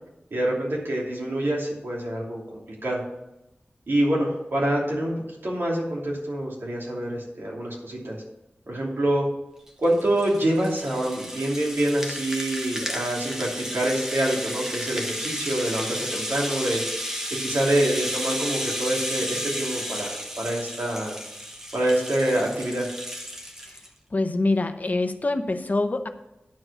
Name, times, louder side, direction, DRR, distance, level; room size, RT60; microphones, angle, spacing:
voice 1, 0.3-3.0 3.9-5.1 5.4-8.2 8.7-9.3 9.8-16.8 17.3-21.1 21.7-22.9, right 1 dB, 75° right, -3 dB, 2.8 m, -26 dB
Rattle (instrument), 9.7-23.9, equal, 10° right, 1.2 m, -33 dB
voice 2, 24.1-26.1, left 2 dB, 45° left, 8 dB, 0.8 m, -25 dB
10.5 x 4.8 x 6.7 m, 0.93 s
wide cardioid pair, 65°, 4 cm